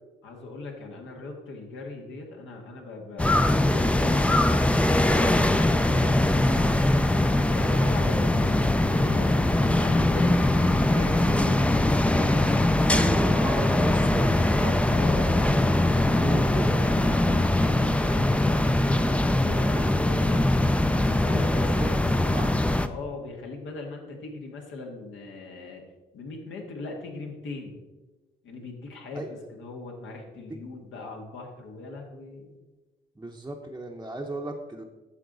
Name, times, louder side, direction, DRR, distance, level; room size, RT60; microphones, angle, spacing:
voice 1, 0.2-6.2 6.7-11.6 14.9-20.5 21.1-22.2 22.9-25.8 26.1-27.8 28.4-32.5, left 3 dB, 75° left, 1 dB, 1.8 m, -40 dB
sound 1, 3.2-22.9, left 1 dB, 5° left, 0.4 m, -22 dB
voice 2, 12.8-15.0 16.1-16.8 21.2-22.6 29.1-29.3 33.2-34.8, right 2 dB, 15° right, 0 dB, 0.8 m, -35 dB
9.5 x 6.4 x 4.0 m, 1.2 s
cardioid pair, 90°, 20 cm